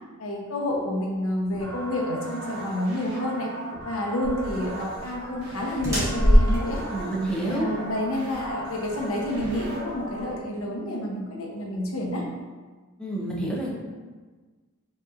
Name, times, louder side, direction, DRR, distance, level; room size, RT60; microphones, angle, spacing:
voice 1, 0.2-3.5 3.8-6.8 7.4-12.2, left 1 dB, 70° left, -1 dB, 0.8 m, -29 dB
sound 1, 1.5-10.3, right 1 dB, 90° right, 1.2 m, -39 dB
sound 2, 4.2-10.3, equal, 15° right, 1.4 m, -25 dB
voice 2, 6.9-7.7 13.0-13.7, right 1 dB, 5° left, -4 dB, 0.6 m, -28 dB
5.2 x 2.9 x 2.4 m, 1.4 s
head